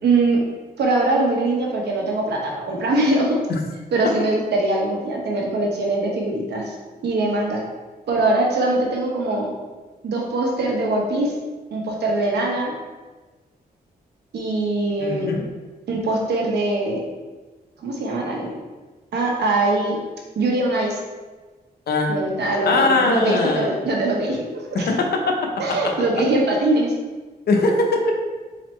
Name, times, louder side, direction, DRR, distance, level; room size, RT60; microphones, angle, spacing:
voice 1, 0.0-0.4 0.8-3.4 3.9-6.7 7.0-7.6 8.1-9.5 10.0-11.3 11.7-12.7 14.3-15.3 15.9-17.0 17.8-18.5 19.1-20.0 20.4-21.0 22.1-24.9 25.6-26.9, right 2 dB, 85° right, -1 dB, 1.0 m, -22 dB
voice 2, 15.0-15.4 21.9-22.1 22.7-23.7 24.7-25.5 27.5-28.0, left 3 dB, 70° left, 2 dB, 0.8 m, -20 dB
4.2 x 4.0 x 3.2 m, 1.3 s
cardioid pair, 105°, 17 cm